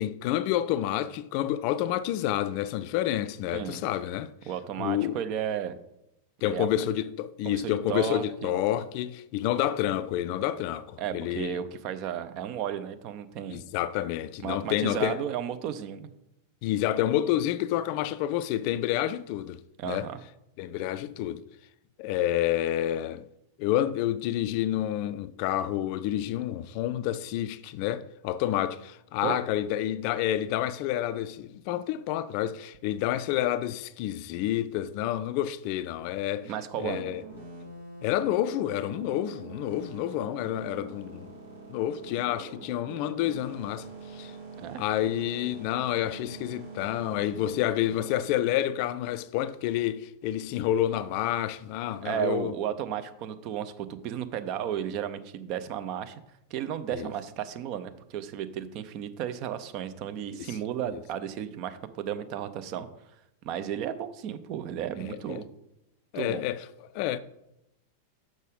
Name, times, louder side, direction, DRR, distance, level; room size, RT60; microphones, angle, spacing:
voice 1, 0.0-4.3 4.8-5.2 6.4-11.6 13.5-15.2 16.6-19.6 19.8-20.1 20.6-21.4 22.0-23.3 23.6-36.5 36.8-37.2 38.0-41.3 41.7-43.9 44.1-44.3 44.8-52.5 56.9-57.1 60.4-60.5 60.9-61.0 65.0-65.4 66.1-66.6 66.9-67.2, left 12 dB, 45° left, 0.4 m, -29 dB
voice 2, 4.5-5.7 6.4-6.7 7.4-8.5 11.0-13.6 14.4-16.1 19.8-20.2 29.2-29.4 36.4-37.0 44.6-44.8 52.0-56.1 56.5-62.9 63.4-65.5 66.1-66.4, right 9 dB, 40° right, 0.7 m, -33 dB
sound 1, 36.9-48.2, right 3 dB, 80° right, 3.3 m, -44 dB
6.5 x 6.0 x 5.1 m
figure-of-eight pair, 90°, 0 cm